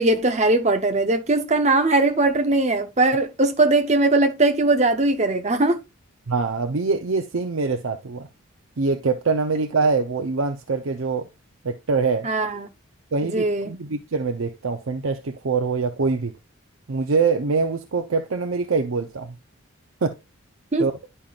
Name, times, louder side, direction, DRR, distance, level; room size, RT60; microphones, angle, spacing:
voice 1, 0.0-5.8 12.2-12.7 13.2-13.7 20.7-20.8, right 2 dB, 30° right, 0.8 m, -20 dB
voice 2, 6.3-8.3 8.8-11.3 11.6-12.3 13.1-16.3 16.9-19.3 20.0-20.2 20.8-20.9, right 4 dB, 75° right, 0.7 m, -24 dB
10.5 x 5.5 x 2.4 m
head